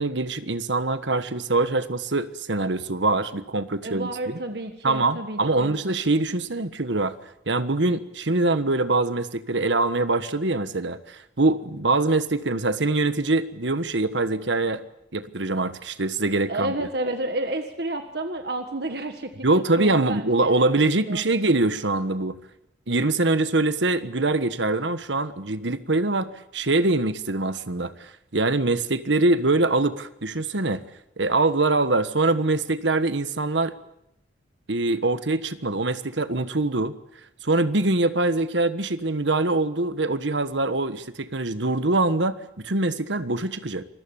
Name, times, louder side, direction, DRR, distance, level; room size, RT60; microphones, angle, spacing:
voice 1, 0.0-4.4 4.8-7.1 7.5-14.8 15.1-16.7 19.4-22.4 22.9-30.8 31.2-33.7 34.7-37.0 37.4-43.8, right 2 dB, 75° right, 12 dB, 1.4 m, -23 dB
voice 2, 3.8-5.8 16.5-20.3 21.0-21.2, right 1 dB, 55° right, 6 dB, 1.6 m, -30 dB
27.0 x 21.5 x 7.2 m, 0.79 s
head